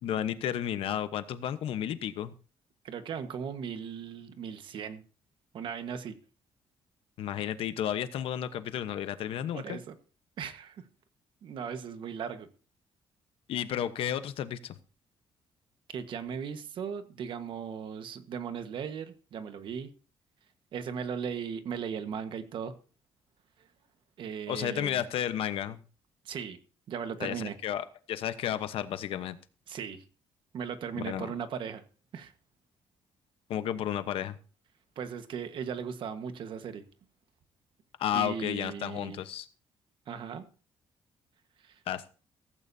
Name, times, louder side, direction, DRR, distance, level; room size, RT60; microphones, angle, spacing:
voice 1, 0.0-2.3 7.2-9.8 13.5-14.7 24.5-25.8 27.2-29.4 31.0-31.3 33.5-34.4 38.0-39.5 41.9-42.1, left 10 dB, 70° left, 1.1 m, -32 dB
voice 2, 2.8-5.0 5.5-6.2 9.5-10.0 10.4-10.8 11.4-12.5 15.9-19.9 20.7-22.7 24.2-25.0 26.2-26.6 26.9-27.5 29.7-30.0 30.5-31.8 32.1-32.3 34.9-36.8 38.1-39.2 40.1-40.4 41.6-41.8, right 7 dB, 55° right, 1.4 m, -37 dB
16.0 x 15.5 x 2.8 m
cardioid pair, 165°, 10 cm